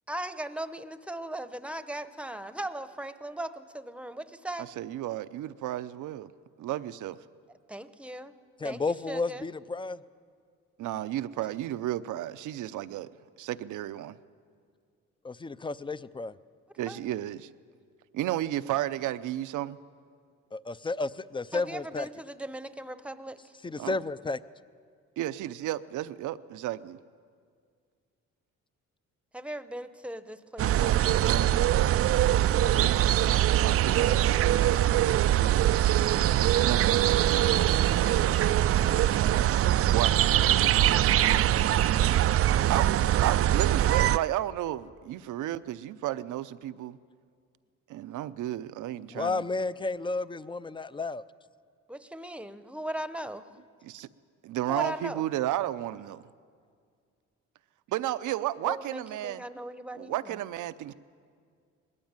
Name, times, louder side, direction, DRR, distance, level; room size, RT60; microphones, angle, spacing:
voice 1, 0.1-4.7 7.7-8.3 8.6-8.8 9.1-9.5 16.9-17.0 21.5-23.4 29.3-31.5 51.9-53.5 54.7-55.2 58.7-60.4, right 1 dB, 5° right, 0.9 m, -38 dB
voice 2, 4.6-6.3 6.6-7.2 10.8-13.1 13.4-14.1 16.8-17.5 18.1-19.8 23.8-24.0 25.2-27.0 32.8-35.2 35.5-36.1 36.6-37.1 39.9-40.2 42.7-47.0 47.9-49.4 53.8-54.1 54.4-56.2 57.9-59.4 60.0-60.9, right 13 dB, 80° right, 0.7 m, -33 dB
voice 3, 8.6-10.0 15.2-16.3 20.5-22.1 23.6-24.4 49.1-51.2, left 3 dB, 15° left, 0.5 m, -32 dB
sound 1, 30.6-44.2, right 12 dB, 50° right, 0.4 m, -23 dB
20.5 x 15.0 x 8.9 m
cardioid pair, 90°, 30 cm